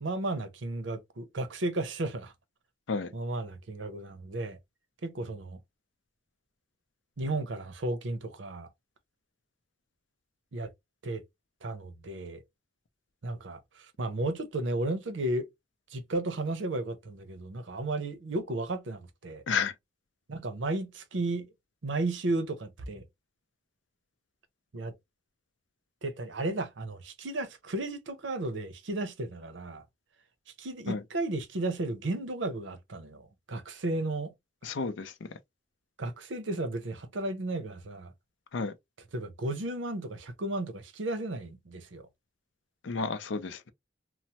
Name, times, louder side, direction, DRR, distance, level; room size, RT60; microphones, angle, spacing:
voice 1, 0.0-2.3 3.1-4.6 5.0-5.6 7.2-8.7 10.5-10.7 11.0-11.2 11.6-12.4 13.2-13.6 14.0-15.5 15.9-19.4 20.3-21.5 21.8-23.0 24.7-24.9 26.0-29.8 30.6-33.2 33.5-34.3 36.0-38.1 39.1-42.0, right 2 dB, 85° right, 0.7 m, -34 dB
voice 2, 34.6-35.1 38.5-38.7 42.8-43.7, left 5 dB, 85° left, 0.5 m, -31 dB
3.0 x 2.0 x 2.8 m
head